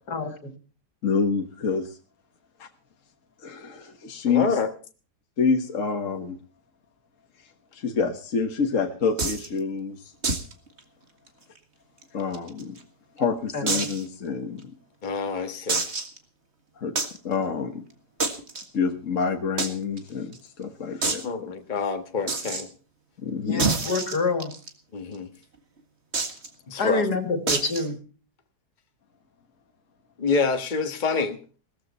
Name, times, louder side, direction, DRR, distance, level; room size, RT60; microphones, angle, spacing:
voice 1, 0.1-0.5 13.5-13.9 23.5-24.5 26.8-28.0, left 3 dB, 75° left, 7 dB, 2.9 m, -27 dB
voice 2, 1.0-2.0 2.6-2.7 3.4-4.6 5.4-6.4 7.7-10.0 12.1-12.8 13.2-14.7 16.8-17.0 17.2-17.8 18.7-21.5 23.2-23.7, left 5 dB, 50° left, 4 dB, 1.8 m, -27 dB
voice 3, 4.3-4.7 15.0-15.8 21.2-22.7 24.9-25.3 26.7-27.1 30.2-31.4, left 4 dB, 30° left, 6 dB, 1.5 m, -27 dB
sound 1, 9.2-9.5 10.2-10.5 10.8-10.9 11.3-11.4 12.0-12.8 13.7-14.0 14.6-14.7 15.7-16.2 17.0-17.2 18.2-18.6 19.6-19.7 20.0-20.1 20.3-20.4 21.0-21.2 22.3-22.6 23.6-24.7 26.1-26.5 27.5-27.9, right 4 dB, 40° right, 2.1 m, -26 dB
18.0 x 14.0 x 4.3 m, 0.39 s
omnidirectional pair, 1.8 m